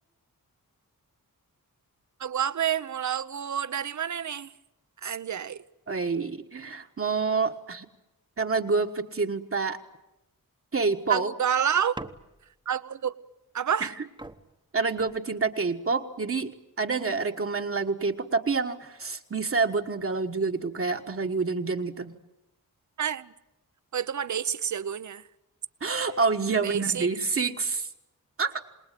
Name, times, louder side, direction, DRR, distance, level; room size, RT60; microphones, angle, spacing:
voice 1, 2.2-4.5 5.0-5.6 11.1-12.0 12.7-13.1 13.5-13.9 23.0-23.3 23.9-25.3 26.6-27.1, right 8 dB, 55° right, 0.9 m, -29 dB
voice 2, 5.9-7.8 8.4-9.8 10.7-11.3 14.7-16.5 16.8-22.1 25.8-27.9 28.4-28.5, right 4 dB, 40° right, 1.4 m, -27 dB
sound 1, 11.9-12.7 13.8-13.9 14.2-15.7 16.4-16.8, right 2 dB, 15° right, 1.1 m, -44 dB
27.5 x 20.5 x 9.1 m
wide cardioid pair, 130°, 35 cm